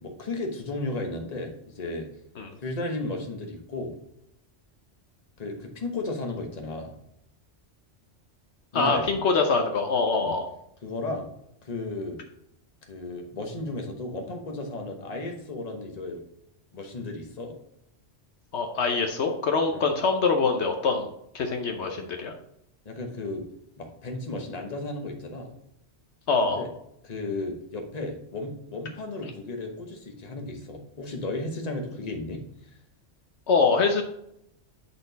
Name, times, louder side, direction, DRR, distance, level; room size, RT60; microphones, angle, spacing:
voice 1, 0.0-2.1 2.6-3.9 5.4-6.9 8.7-9.2 10.2-10.3 10.8-11.3 11.6-12.2 12.8-16.2 16.7-17.6 19.7-19.9 22.8-23.4 23.8-25.5 26.6-26.7 27.0-32.4, left 2 dB, 35° left, 3 dB, 1.2 m, -34 dB
voice 2, 8.7-10.5 18.5-21.1 21.3-22.3 26.3-26.6 33.5-34.0, left 4 dB, 70° left, 4 dB, 1.0 m, -24 dB
8.7 x 4.1 x 4.0 m, 0.76 s
omnidirectional pair, 1.2 m